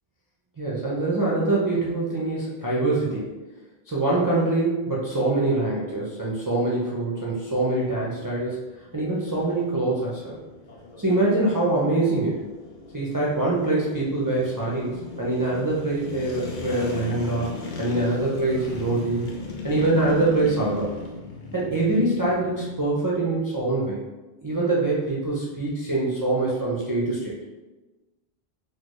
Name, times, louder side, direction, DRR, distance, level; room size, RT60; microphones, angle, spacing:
voice 1, 0.6-3.3 3.9-8.6 8.9-10.3 11.0-12.4 12.9-17.5 17.8-19.3 19.6-20.9 21.5-24.0 24.4-27.3, right 2 dB, 30° right, -6 dB, 0.4 m, -24 dB
sound 1, 7.5-22.7, left 4 dB, 60° left, 0.7 m, -38 dB
4.3 x 2.0 x 3.0 m, 1.1 s
omnidirectional pair, 1.0 m